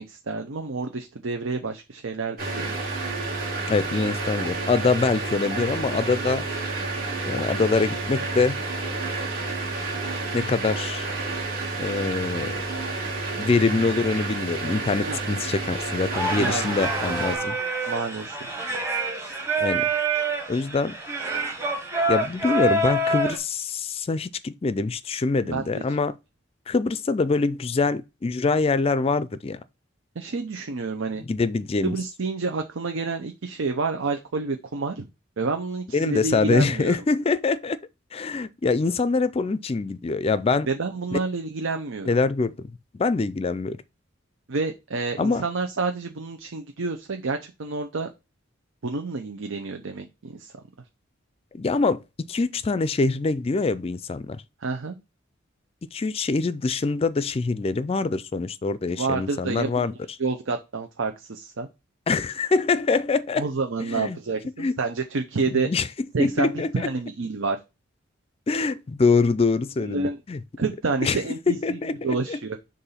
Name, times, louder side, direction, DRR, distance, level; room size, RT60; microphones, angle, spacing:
voice 1, 0.0-2.8 15.0-15.3 16.3-16.6 17.9-18.4 25.4-25.9 30.2-31.2 31.8-35.1 35.4-36.9 40.7-42.1 44.5-48.1 48.8-50.5 54.6-55.0 59.0-59.9 60.2-61.7 63.4-65.7 66.1-67.6 69.8-70.2 70.6-72.6, right 4 dB, 90° right, 0.7 m, -29 dB
sound 1, 2.4-17.4, right 3 dB, 50° right, 2.4 m, -30 dB
voice 2, 3.7-6.4 7.3-8.6 10.3-11.1 11.8-12.6 13.4-17.6 19.6-19.9 20.5-20.9 22.1-26.1 26.7-29.6 31.2-32.0 35.9-37.8 38.1-40.7 41.1-41.2 42.1-42.7 43.0-43.8 45.2-45.4 51.5-52.0 52.3-54.4 55.9-59.9 62.1-63.4 63.9-64.2 64.6-64.8 65.5-65.9 66.2-66.9 68.5-70.4 71.0-71.2 71.5-72.4, left 4 dB, 30° left, 0.4 m, -24 dB
Singing, 16.1-23.4, right 2 dB, 15° right, 1.3 m, -26 dB
6.7 x 2.6 x 5.6 m
head